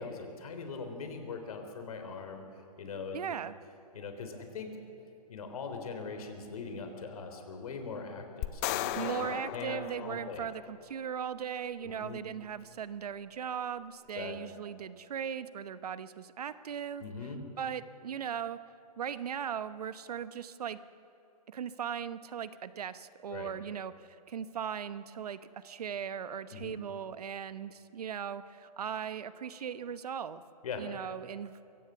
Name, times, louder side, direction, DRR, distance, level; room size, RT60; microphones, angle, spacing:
voice 1, 0.0-2.4 2.8-3.2 3.9-4.7 5.3-10.5 11.8-12.2 14.2-14.3 17.0-17.4 23.3-23.5 26.5-26.7 30.6-30.8, left 4 dB, 60° left, 6 dB, 3.7 m, -41 dB
voice 2, 3.1-3.5 9.0-17.0 17.6-18.6 19.0-20.8 21.5-30.4 30.8-31.6, right 8 dB, 70° right, 14 dB, 1.0 m, -38 dB
sound 1, 8.4-10.8, left 13 dB, 25° left, 0.6 m, -36 dB
23.5 x 17.0 x 7.0 m, 3.0 s
hypercardioid pair, 145°, 20 cm